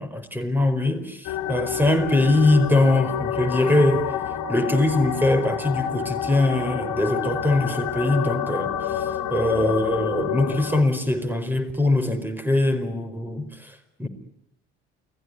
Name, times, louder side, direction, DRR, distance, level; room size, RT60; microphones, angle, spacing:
voice 1, 0.0-4.1 4.5-14.1, left 2 dB, 5° right, 4.8 m, -22 dB
sound 1, 1.2-10.8, left 9 dB, 60° left, 2.7 m, -28 dB
29.0 x 19.0 x 9.7 m
figure-of-eight pair, 50°, 33 cm